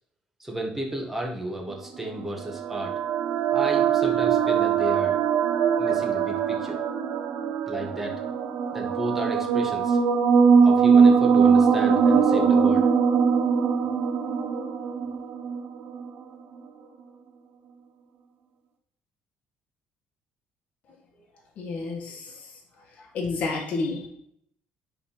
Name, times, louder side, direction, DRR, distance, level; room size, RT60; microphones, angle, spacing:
voice 1, 0.4-3.0 3.5-5.2 5.8-6.8 7.7-8.2 8.7-10.0 10.6-12.9, right 1 dB, 10° right, 1 dB, 1.4 m, -33 dB
sound 1, 1.9-16.1, right 6 dB, 75° right, 1.1 m, -21 dB
voice 2, 21.6-22.4 23.1-24.1, left 3 dB, 50° left, -1 dB, 1.8 m, -30 dB
9.8 x 3.7 x 5.6 m, 0.70 s
cardioid pair, 160°, 3 cm